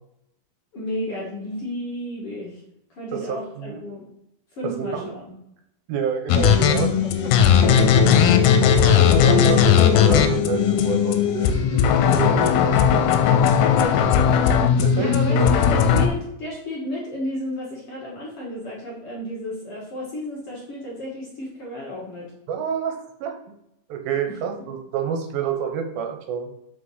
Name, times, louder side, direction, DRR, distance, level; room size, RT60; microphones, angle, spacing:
voice 1, 0.7-2.6 2.9-4.0 4.5-5.3 13.7-14.1 14.9-22.3 24.3-24.4, left 1 dB, 45° left, -4 dB, 2.2 m, -32 dB
voice 2, 3.1-3.8 4.6-5.1 5.9-7.1 8.0-8.2 8.8-13.0 14.8-15.5 22.5-23.3 23.9-26.5, right 7 dB, 75° right, 4 dB, 2.8 m, -29 dB
sound 1, 6.3-16.1, left 7 dB, 85° left, 2.6 m, -17 dB
6.0 x 5.9 x 5.6 m, 0.79 s
omnidirectional pair, 4.3 m